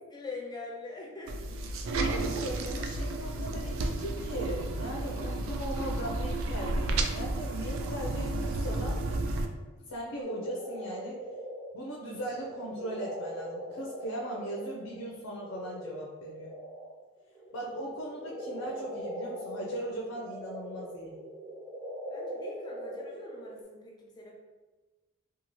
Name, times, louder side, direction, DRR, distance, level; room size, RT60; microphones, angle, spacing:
voice 1, 0.1-1.6 22.1-24.3, left 3 dB, 20° left, -2 dB, 0.4 m, -43 dB
sound 1, 1.3-9.5, right 2 dB, 75° right, 0.3 m, -32 dB
voice 2, 1.9-9.0 9.9-11.2 11.7-16.6 17.5-21.2, right 1 dB, 85° left, -3 dB, 0.5 m, -39 dB
sound 2, 10.2-16.9 17.3-23.6, equal, 15° right, 1.0 m, -41 dB
2.7 x 2.3 x 2.9 m, 1.2 s
head